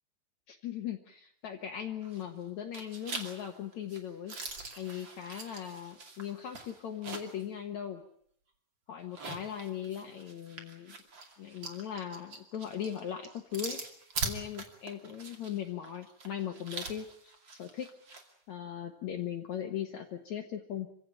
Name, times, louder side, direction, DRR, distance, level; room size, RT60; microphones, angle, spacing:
voice 1, 0.5-4.3 4.8-8.0 8.9-11.0 11.4-13.8 14.2-17.9 18.5-20.9, left 9 dB, 75° left, 5 dB, 1.6 m, -39 dB
sound 1, 2.0-2.4 2.7-7.4 7.8-7.9 9.0-18.3, right 3 dB, 35° right, 2.3 m, -43 dB
26.5 x 16.5 x 9.0 m, 0.68 s
omnidirectional pair, 5.2 m